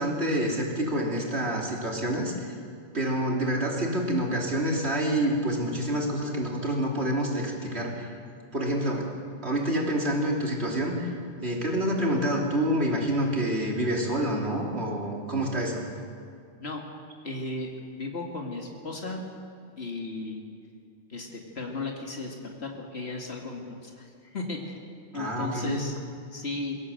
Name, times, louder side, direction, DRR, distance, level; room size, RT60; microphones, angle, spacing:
voice 1, 0.0-2.3 2.9-8.1 8.5-9.1 9.4-11.1 11.4-15.8 25.1-25.8, right 1 dB, 80° right, -1 dB, 3.4 m, -27 dB
voice 2, 17.2-19.2 19.8-20.4 21.1-24.8 25.1-26.0 26.3-26.8, left 3 dB, 75° left, 0 dB, 2.5 m, -35 dB
22.5 x 16.0 x 7.7 m, 2.4 s
omnidirectional pair, 1.1 m